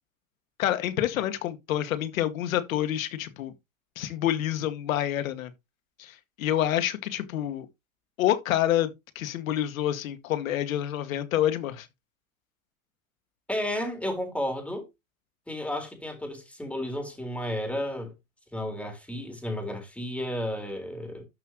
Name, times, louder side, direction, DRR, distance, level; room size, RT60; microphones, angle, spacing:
voice 1, 0.6-3.5 4.0-5.5 6.0-7.7 8.2-11.9, left 12 dB, 75° left, 2.1 m, -28 dB
voice 2, 13.5-14.8 15.5-18.1 18.5-21.2, left 1 dB, 5° left, 4.0 m, -32 dB
13.0 x 5.9 x 3.1 m
hypercardioid pair, 115°, 41 cm